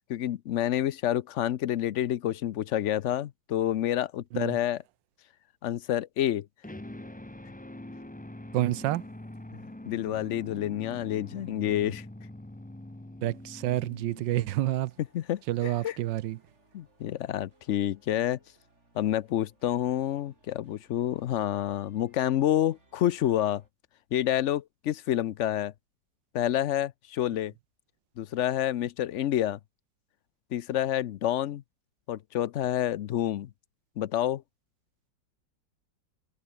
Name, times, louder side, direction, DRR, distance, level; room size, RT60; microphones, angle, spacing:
voice 1, 0.1-4.8 5.6-6.5 9.5-12.1 15.1-16.0 16.7-18.4 18.9-23.6 24.1-25.7 26.3-27.5 28.2-29.6 30.5-31.6 32.1-33.5 34.0-34.4, left 12 dB, 70° left, 0.7 m, -28 dB
sound 1, 6.6-14.9, left 1 dB, 10° left, 0.4 m, -44 dB
voice 2, 8.5-9.0 13.2-14.9 15.5-16.4, right 15 dB, 80° right, 1.4 m, -28 dB
sound 2, 14.2-23.7, right 2 dB, 40° right, 4.8 m, -65 dB
omnidirectional pair, 1.9 m